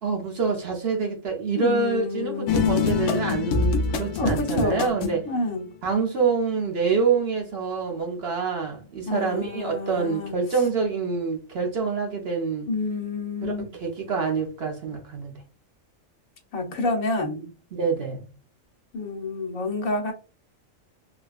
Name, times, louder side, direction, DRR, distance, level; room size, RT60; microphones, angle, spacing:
voice 1, 0.0-5.2 5.8-12.7 13.4-13.5 13.8-15.3 17.7-18.3, right 5 dB, 55° right, 1.0 m, -26 dB
voice 2, 1.5-3.0 4.2-4.9 5.3-5.6 9.1-10.3 12.7-13.7 16.5-17.5 18.9-20.1, left 2 dB, 80° left, 1.4 m, -29 dB
sound 1, 2.5-5.3, left 5 dB, 65° left, 0.8 m, -25 dB
3.8 x 2.2 x 2.4 m
omnidirectional pair, 1.4 m